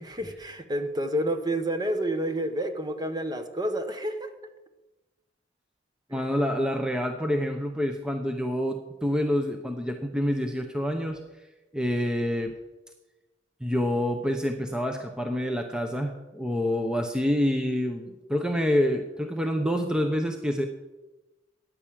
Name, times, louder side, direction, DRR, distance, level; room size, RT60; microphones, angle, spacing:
voice 1, 0.0-4.3 6.1-6.2, right 1 dB, 20° right, 8 dB, 1.2 m, -29 dB
voice 2, 6.1-11.2 11.7-12.5 13.6-20.7, equal, 5° right, 4 dB, 0.9 m, -27 dB
13.5 x 9.8 x 7.5 m, 1.1 s
head